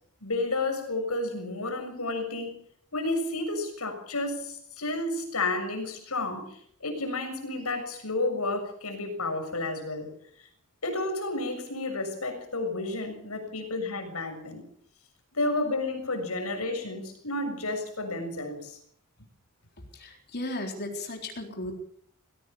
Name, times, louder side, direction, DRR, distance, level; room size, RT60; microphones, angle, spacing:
voice 1, 0.2-2.6 2.9-10.1 10.4-10.5 10.8-14.6 15.3-18.8, left 2 dB, 80° left, 6 dB, 6.8 m, -31 dB
voice 2, 19.9-21.8, left 1 dB, 50° left, 2 dB, 3.9 m, -35 dB
22.0 x 17.0 x 7.2 m, 0.64 s
head